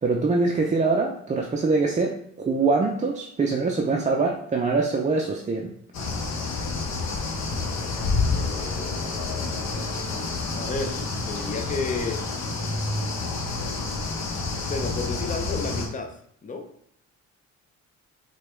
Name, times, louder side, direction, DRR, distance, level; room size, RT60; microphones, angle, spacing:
voice 1, 0.0-5.7, right 3 dB, 25° right, 0 dB, 0.4 m, -24 dB
sound 1, 5.9-15.9, left 3 dB, 60° left, 0.8 m, -29 dB
voice 2, 7.7-9.9 10.5-12.2 14.6-16.7, left 4 dB, 25° left, 5 dB, 0.6 m, -33 dB
4.6 x 2.3 x 3.1 m, 0.69 s
cardioid pair, 90°, 30 cm